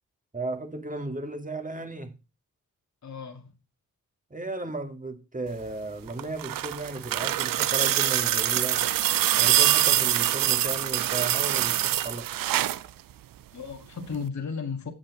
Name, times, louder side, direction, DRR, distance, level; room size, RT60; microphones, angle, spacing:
voice 1, 0.3-2.1 4.3-8.9 9.4-12.5, right 2 dB, 25° right, 2.1 m, -35 dB
voice 2, 3.0-3.5 13.5-14.9, left 5 dB, 55° left, 2.1 m, -34 dB
sound 1, 6.1-12.9 14.1-14.2, right 13 dB, 80° right, 0.6 m, -24 dB
8.1 x 7.6 x 4.0 m
cardioid pair, 55°, 33 cm